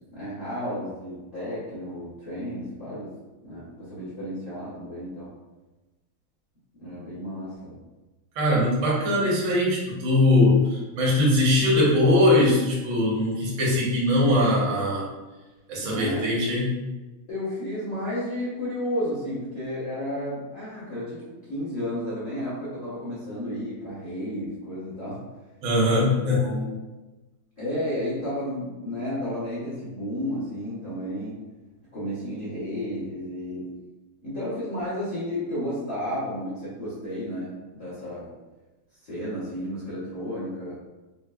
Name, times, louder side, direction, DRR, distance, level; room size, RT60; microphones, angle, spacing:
voice 1, 0.1-3.1 3.4-5.3 6.7-7.8 15.8-16.5 17.3-25.3 25.9-26.8 27.6-31.4 31.9-33.7 34.2-38.3 39.0-40.8, equal, 35° left, -11 dB, 0.9 m, -32 dB
voice 2, 8.3-15.1 15.7-16.7 25.6-26.4, left 1 dB, 55° right, -4 dB, 0.9 m, -21 dB
4.1 x 2.2 x 2.3 m, 1.1 s
omnidirectional pair, 2.3 m